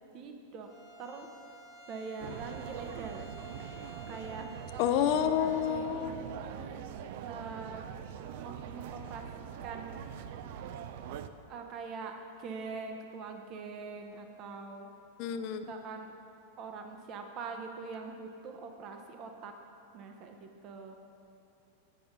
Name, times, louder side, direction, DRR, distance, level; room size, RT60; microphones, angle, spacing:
voice 1, 0.1-0.7 1.0-1.3 1.9-3.3 4.1-4.5 5.4-6.9 7.3-7.9 8.4-10.0 11.5-14.9 15.7-16.1 16.6-19.5 19.9-21.0, right 4 dB, 40° right, 4 dB, 0.8 m, -43 dB
Bowed string instrument, 0.6-5.9, right 1 dB, 20° right, 1.3 m, -52 dB
sound 1, 2.2-11.3, right 9 dB, 60° right, 0.4 m, -43 dB
voice 2, 4.8-6.2 15.2-15.6, left 9 dB, 50° left, 8 dB, 0.4 m, -29 dB
8.5 x 5.2 x 5.9 m, 2.8 s
hypercardioid pair, 120°, 0 cm